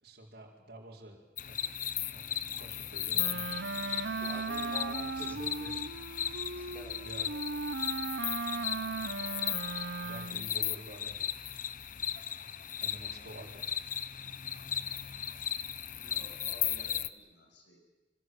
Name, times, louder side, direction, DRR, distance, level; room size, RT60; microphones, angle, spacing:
voice 1, 0.0-1.6 2.1-3.5 5.2-5.7 7.0-7.5 10.0-11.2 12.8-15.7, right 1 dB, 60° right, -3 dB, 4.6 m, -50 dB
sound 1, 1.4-17.1, left 10 dB, 50° left, 1.0 m, -36 dB
Wind instrument woodwind instrument, 3.1-10.6, right 3 dB, 85° right, 1.0 m, -37 dB
voice 2, 4.2-5.8 6.3-7.0, left 1 dB, 10° left, 4 dB, 3.6 m, -48 dB
voice 3, 15.9-17.8, left 1 dB, 90° left, 2 dB, 7.2 m, -54 dB
26.5 x 26.0 x 8.0 m, 1.2 s
head